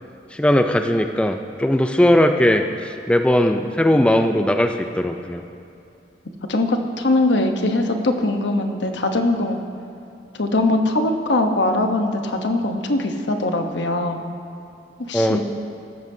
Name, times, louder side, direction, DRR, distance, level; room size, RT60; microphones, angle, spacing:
voice 1, 0.3-5.4 15.1-15.4, left 1 dB, 5° left, 6 dB, 0.4 m, -18 dB
voice 2, 6.5-9.6 10.4-14.2 15.1-15.4, left 2 dB, 80° left, 5 dB, 1.0 m, -21 dB
16.0 x 13.0 x 2.7 m, 2.6 s
head